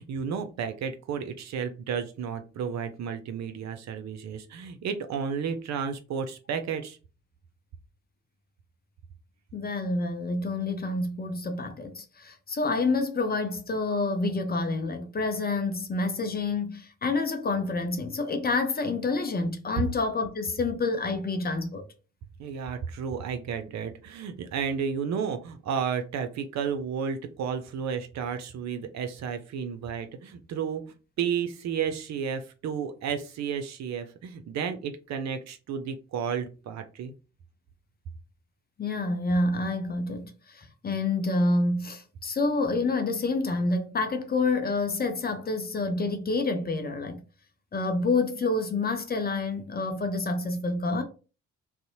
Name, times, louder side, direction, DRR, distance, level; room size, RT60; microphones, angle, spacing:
voice 1, 0.0-7.0 22.4-30.8 31.2-37.1, right 7 dB, 50° right, 0.5 m, -32 dB
voice 2, 9.5-21.8 38.8-47.2 47.7-51.0, left 3 dB, 25° left, 0.6 m, -28 dB
2.6 x 2.0 x 2.6 m
hypercardioid pair, 40°, 36 cm